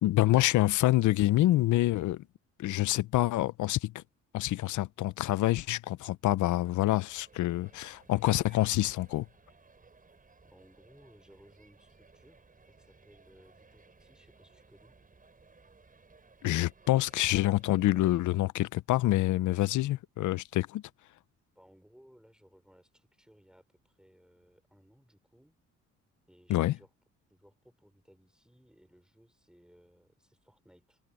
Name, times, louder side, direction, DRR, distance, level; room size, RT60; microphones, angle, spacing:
voice 1, 0.0-2.2 2.6-4.0 4.3-9.3 16.4-20.8 26.5-26.8, left 16 dB, 75° left, 0.7 m, -27 dB
sound 1, 7.0-18.3, right 4 dB, 30° right, 6.6 m, -60 dB
voice 2, 10.4-15.0 21.6-25.6 26.3-26.9 27.3-31.0, equal, 5° right, 5.6 m, -61 dB
cardioid pair, 90°, 30 cm